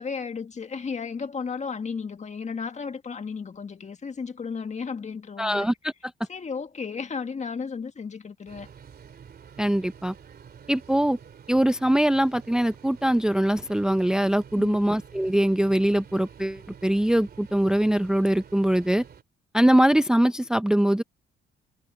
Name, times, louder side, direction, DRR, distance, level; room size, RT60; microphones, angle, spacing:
voice 1, 0.0-5.7 6.3-8.7 14.6-14.9, left 5 dB, 35° left, 1.8 m, -34 dB
voice 2, 5.4-5.9 9.6-10.1 10.7-11.2 11.5-19.0 19.5-21.0, right 1 dB, 5° right, 0.6 m, -22 dB
sound 1, 8.5-19.2, right 7 dB, 50° right, 2.9 m, -48 dB
cardioid pair, 90°, 20 cm